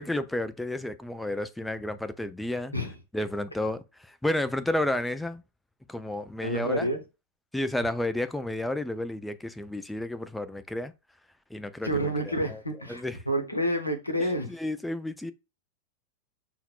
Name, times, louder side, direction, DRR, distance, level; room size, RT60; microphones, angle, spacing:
voice 1, 0.0-2.7 3.1-5.4 5.9-6.9 7.5-10.9 11.5-12.6 12.9-13.2 14.2-15.3, left 1 dB, 5° left, 0.3 m, -31 dB
voice 2, 6.4-7.0 11.8-14.6, equal, 85° left, 0.7 m, -29 dB
5.6 x 2.1 x 2.3 m
figure-of-eight pair, 90°, 0 cm